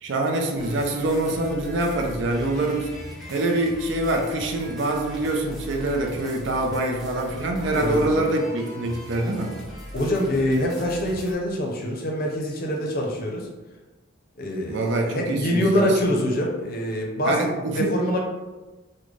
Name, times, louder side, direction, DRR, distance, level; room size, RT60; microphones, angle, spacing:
voice 1, 0.0-2.9 3.3-9.6 14.7-16.0 17.2-18.0, right 2 dB, 65° right, 3 dB, 0.5 m, -25 dB
sound 1, 0.6-11.3, equal, ahead, 0.6 m, -40 dB
voice 2, 7.8-8.2 9.9-13.5 14.4-17.5 17.7-18.2, equal, 50° left, 0 dB, 0.6 m, -25 dB
3.7 x 2.1 x 3.1 m, 1.2 s
head